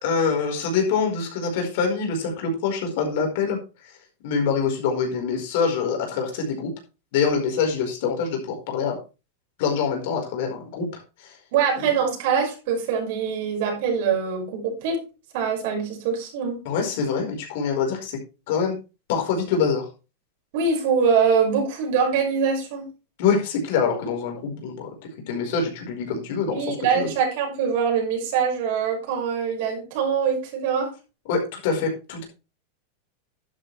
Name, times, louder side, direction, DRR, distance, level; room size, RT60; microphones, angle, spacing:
voice 1, 0.0-4.0 4.2-6.7 7.1-9.0 9.6-11.4 11.8-11.9 16.6-18.2 18.5-18.7 19.1-19.9 23.2-24.9 25.3-27.1 31.3-32.2, left 5 dB, 65° left, 2 dB, 4.6 m, -25 dB
voice 2, 11.5-15.0 15.3-16.6 20.5-22.9 26.5-30.9, right 6 dB, 65° right, 2 dB, 5.9 m, -23 dB
11.5 x 8.8 x 3.4 m, 0.30 s
supercardioid pair, 130°, 0 cm